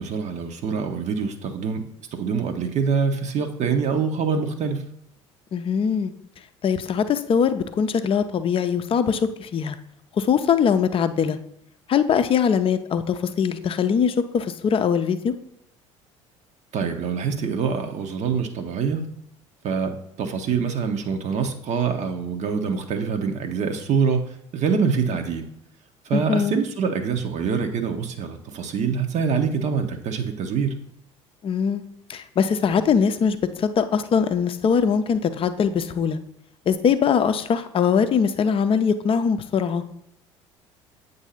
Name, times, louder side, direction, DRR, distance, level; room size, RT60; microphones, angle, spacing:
voice 1, 0.0-1.8 2.1-4.8 16.7-19.1 19.6-25.5 26.1-30.7, right 5 dB, 45° right, 6 dB, 0.9 m, -25 dB
voice 2, 5.5-6.1 6.6-9.8 10.2-11.4 11.9-15.3 26.1-26.6 31.4-31.8 32.1-36.2 36.7-39.8, left 7 dB, 35° left, 10 dB, 0.6 m, -22 dB
8.0 x 2.7 x 5.7 m, 0.75 s
figure-of-eight pair, 60°, 16 cm